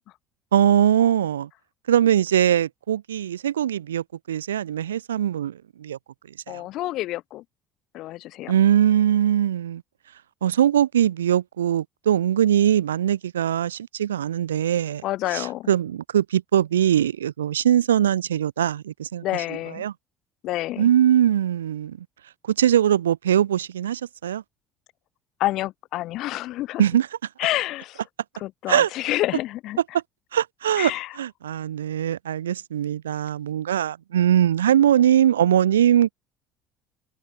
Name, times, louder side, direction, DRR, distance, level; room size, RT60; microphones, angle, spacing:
voice 1, 0.5-1.5 1.9-6.0 6.5-6.6 8.5-9.8 10.4-15.0 15.3-19.4 19.7-19.9 20.8-22.0 22.5-24.4 26.8-27.1 28.7-28.9 30.3-36.1, right 10 dB, 85° right, 4.4 m, -21 dB
voice 2, 6.5-7.4 7.9-8.5 15.0-15.7 19.2-19.8 20.4-20.9 25.4-26.8 27.4-28.0 28.4-29.8 30.8-31.1, left 16 dB, 60° left, 3.7 m, -28 dB
hypercardioid pair, 60°, 0 cm